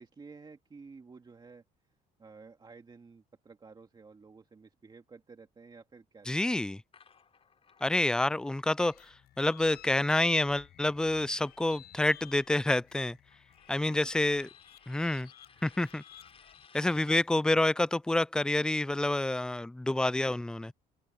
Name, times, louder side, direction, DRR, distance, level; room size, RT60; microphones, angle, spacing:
voice 1, 0.0-1.6 2.2-6.6 13.9-14.0 17.1-17.2, right 4 dB, 25° right, 2.2 m, -52 dB
voice 2, 6.3-6.8 7.8-8.9 9.4-13.2 13.7-14.5 14.9-15.3 15.6-16.0 16.7-20.7, left 2 dB, 5° left, 0.3 m, -28 dB
sound 1, 6.9-11.0 11.3-17.3, left 6 dB, 35° left, 6.1 m, -61 dB
sound 2, 8.8-17.7, left 12 dB, 65° left, 7.3 m, -56 dB
open air
cardioid pair, 110°, 17 cm